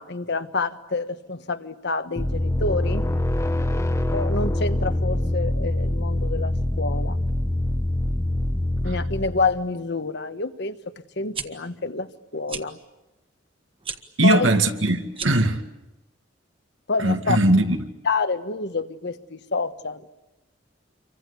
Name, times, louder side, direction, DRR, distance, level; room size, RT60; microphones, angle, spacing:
voice 1, 0.0-3.1 4.1-7.2 8.8-10.8 11.2-12.8 14.2-14.5 16.9-17.4 18.0-20.1, left 3 dB, 65° left, 1.4 m, -28 dB
sound 1, 2.2-9.6, left 1 dB, 15° left, 0.9 m, -24 dB
sound 2, 11.1-11.5 12.5-12.7 13.8-14.0 15.1-15.5, right 6 dB, 30° right, 1.6 m, -33 dB
voice 2, 14.2-15.6 17.0-17.8, right 1 dB, 85° right, 2.2 m, -19 dB
28.0 x 24.5 x 8.3 m
head